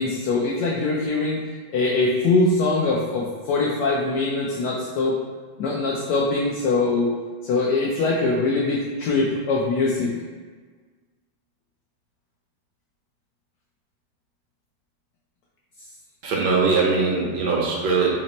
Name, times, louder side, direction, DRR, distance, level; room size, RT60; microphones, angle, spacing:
voice 1, 0.0-1.4 1.7-5.2 5.6-7.1 7.4-10.1, left 3 dB, 75° left, -3 dB, 1.0 m, -22 dB
voice 2, 16.2-18.2, right 4 dB, 70° right, -2 dB, 1.1 m, -21 dB
4.1 x 2.1 x 4.0 m, 1.4 s
omnidirectional pair, 2.1 m